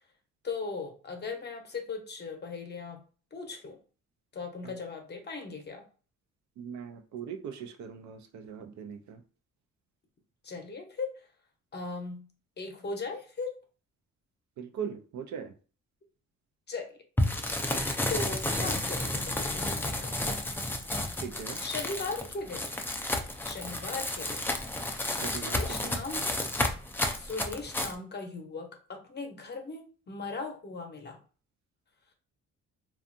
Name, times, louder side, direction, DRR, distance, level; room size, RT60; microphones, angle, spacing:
voice 1, 0.4-3.0 3.3-3.8 4.3-5.8 10.4-11.1 11.7-12.2 12.6-13.6 16.7-16.9 18.1-20.1 21.6-22.7 23.4-24.4 25.3-26.3 27.1-31.2, left 4 dB, 35° left, 3 dB, 0.7 m, -38 dB
voice 2, 6.6-9.2 14.6-15.5 21.2-21.6 25.2-26.0, right 7 dB, 70° right, 6 dB, 0.5 m, -40 dB
sound 1, 17.2-27.9, left 1 dB, 5° left, 0.3 m, -31 dB
2.6 x 2.3 x 2.5 m, 0.38 s
cardioid pair, 90°, 30 cm